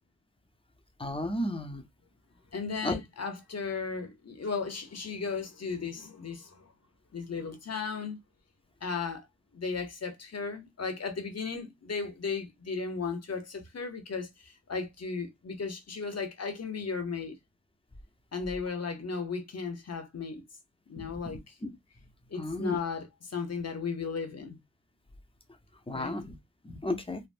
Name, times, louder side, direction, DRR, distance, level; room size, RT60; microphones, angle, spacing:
voice 1, 1.0-1.8 2.8-3.0 21.0-21.1 21.6-21.7 22.4-22.8 25.9-26.3 26.6-27.2, left 1 dB, 15° left, 0.6 m, -33 dB
voice 2, 2.5-6.7 7.1-8.2 8.8-9.3 9.5-17.4 18.3-20.5 20.9-21.5 22.3-24.6 25.9-26.2, left 5 dB, 45° left, 0.8 m, -35 dB
3.3 x 2.0 x 2.5 m
wide cardioid pair, 65°, 35 cm